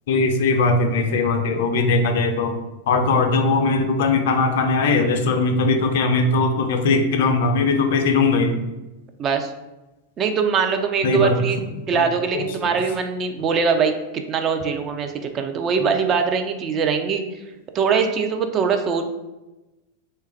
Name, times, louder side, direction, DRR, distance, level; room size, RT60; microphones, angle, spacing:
voice 1, 0.1-2.5 2.9-8.6 11.0-11.4 11.9-12.0 12.3-12.7, left 3 dB, 55° left, 6 dB, 0.4 m, -20 dB
voice 2, 9.2-9.5 10.2-11.6 11.9-17.2 17.7-19.0, right 6 dB, 30° right, 5 dB, 0.3 m, -22 dB
3.1 x 2.2 x 3.3 m, 1.0 s
figure-of-eight pair, 90°, 0 cm